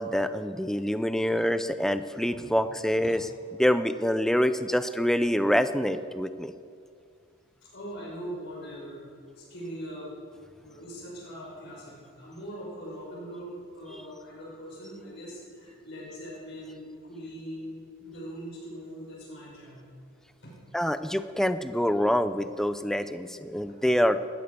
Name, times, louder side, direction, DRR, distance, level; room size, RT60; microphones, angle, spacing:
voice 1, 0.0-3.3 3.6-6.5 13.9-14.0 20.7-24.3, equal, ahead, 11 dB, 0.5 m, -26 dB
voice 2, 7.6-9.0 9.4-10.1 10.6-19.8 20.4-20.5, equal, 55° left, -4 dB, 5.5 m, -41 dB
19.0 x 13.5 x 5.3 m, 2.2 s
head